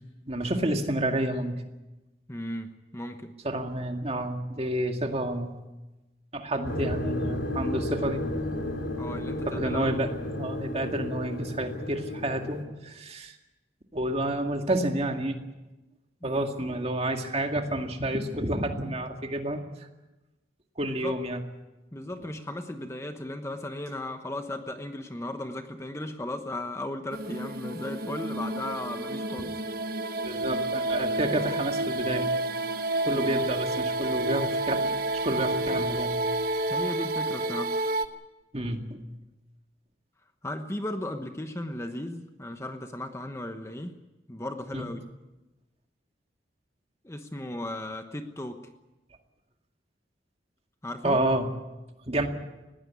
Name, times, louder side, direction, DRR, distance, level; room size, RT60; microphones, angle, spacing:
voice 1, 0.3-1.6 3.4-5.5 6.3-8.2 9.5-13.3 13.9-15.5 16.2-19.6 20.8-21.4 30.2-32.2 33.0-36.1 38.5-39.0 44.7-44.9 51.0-51.5 52.1-52.3, right 1 dB, 35° right, 4 dB, 2.1 m, -29 dB
voice 2, 2.3-3.3 9.0-9.9 16.2-16.4 20.8-21.1 21.9-29.5 33.1-33.4 36.7-37.7 40.4-44.0 44.3-45.0 47.0-48.6 50.8-51.2, left 1 dB, 15° left, 6 dB, 1.1 m, -36 dB
sound 1, 6.6-12.6, left 1 dB, 85° left, 3.4 m, -33 dB
sound 2, 27.1-38.1, right 2 dB, 55° right, 1.2 m, -29 dB
20.5 x 16.5 x 9.6 m, 1.0 s
head